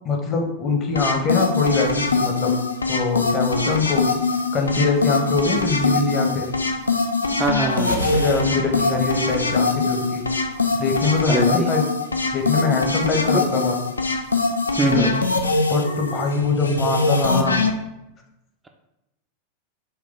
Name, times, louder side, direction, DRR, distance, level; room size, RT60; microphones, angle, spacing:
voice 1, 0.0-2.6 2.9-4.0 4.5-6.5 8.1-10.2 10.7-11.9 12.3-13.8 14.8-15.1 15.7-17.6, left 4 dB, 30° left, 3 dB, 0.7 m, -23 dB
sound 1, 0.9-17.7, left 3 dB, 80° left, 0.3 m, -23 dB
voice 2, 7.4-8.0 11.3-11.7 13.3-13.4 14.8-15.1, right 2 dB, 15° right, 3 dB, 0.3 m, -22 dB
sound 2, 7.7-10.6, right 2 dB, 75° right, 0.6 m, -34 dB
4.4 x 2.2 x 3.6 m, 0.91 s
figure-of-eight pair, 90°, 0 cm